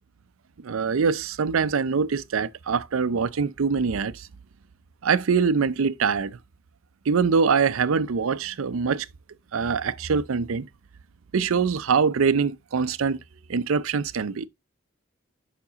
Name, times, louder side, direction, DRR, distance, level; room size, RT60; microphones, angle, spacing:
voice 1, 0.6-4.3 5.0-6.4 7.1-9.1 9.5-10.7 11.3-13.2 13.5-14.5, right 5 dB, 80° right, 0.5 m, -24 dB
7.0 x 5.9 x 2.8 m
head